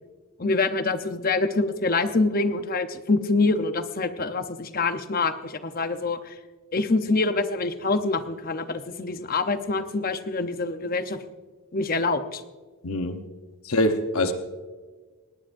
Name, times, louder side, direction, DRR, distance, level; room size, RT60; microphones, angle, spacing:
voice 1, 0.4-6.3 6.7-11.2 11.7-12.4, left 3 dB, 40° left, 9 dB, 0.8 m, -25 dB
voice 2, 12.8-13.2 13.6-14.3, left 1 dB, 75° left, 6 dB, 1.0 m, -24 dB
19.0 x 18.5 x 2.6 m, 1.4 s
head